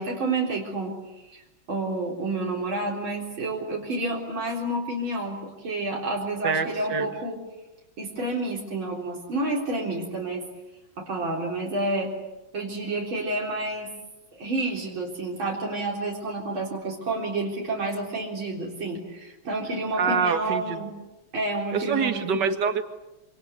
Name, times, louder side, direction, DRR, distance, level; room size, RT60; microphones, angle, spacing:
voice 1, 0.0-7.4 8.0-10.4 11.0-12.1 12.5-13.9 14.3-20.9 21.3-22.4, right 2 dB, 90° right, -2 dB, 4.8 m, -29 dB
voice 2, 6.4-7.1 20.0-20.8 21.7-22.8, right 6 dB, 60° right, 8 dB, 2.4 m, -25 dB
26.5 x 26.5 x 8.3 m, 1.0 s
omnidirectional pair, 2.1 m